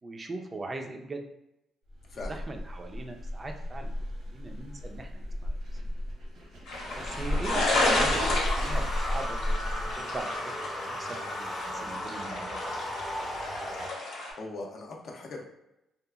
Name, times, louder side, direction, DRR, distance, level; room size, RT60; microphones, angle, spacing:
voice 1, 0.0-1.2 2.3-5.6 7.0-12.5, right 2 dB, 30° right, 4 dB, 0.4 m, -40 dB
sound 1, 1.9-10.2, left 1 dB, 85° right, 0.9 m, -34 dB
sound 2, 6.7-14.3, left 2 dB, 85° left, 0.8 m, -32 dB
sound 3, 7.5-13.9, equal, 25° left, 0.7 m, -37 dB
voice 2, 14.2-15.4, left 2 dB, 60° left, 1 dB, 0.5 m, -41 dB
2.8 x 2.3 x 2.3 m, 0.87 s
cardioid pair, 90°, 0 cm